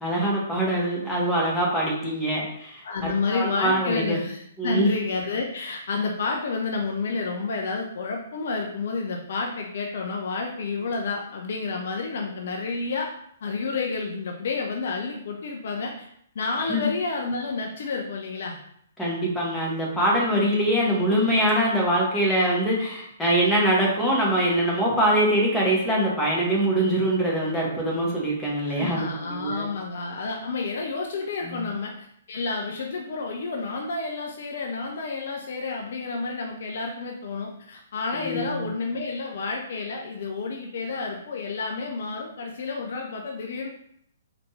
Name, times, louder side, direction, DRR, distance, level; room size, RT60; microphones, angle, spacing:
voice 1, 0.0-4.2 4.6-4.9 16.7-16.9 19.0-29.7 31.4-31.7 38.2-38.7, right 1 dB, 5° left, -5 dB, 1.2 m, -23 dB
voice 2, 2.8-13.1 13.4-16.1 16.3-18.6 28.6-43.7, left 4 dB, 55° left, 0 dB, 0.5 m, -30 dB
4.1 x 2.5 x 3.3 m, 0.70 s
figure-of-eight pair, 120°, 0 cm